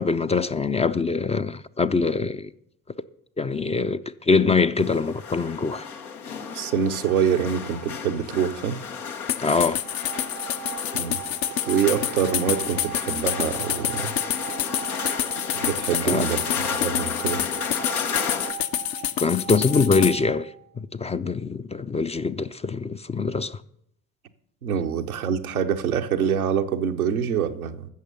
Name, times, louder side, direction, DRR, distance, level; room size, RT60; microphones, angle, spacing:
voice 1, 0.0-2.5 3.4-5.9 9.4-9.8 16.0-16.3 19.2-20.5 20.8-23.6, left 4 dB, 15° left, 0.4 m, -23 dB
sound 1, 4.8-18.5, left 6 dB, 85° left, 0.9 m, -34 dB
voice 2, 6.5-8.8 11.0-11.2 11.6-14.1 15.6-17.4 24.6-27.9, right 8 dB, 85° right, 0.8 m, -25 dB
sound 2, 9.3-20.2, left 12 dB, 55° left, 0.7 m, -28 dB
sound 3, 9.7-20.7, right 15 dB, 45° right, 0.6 m, -39 dB
15.0 x 6.5 x 6.7 m
figure-of-eight pair, 50°, 42 cm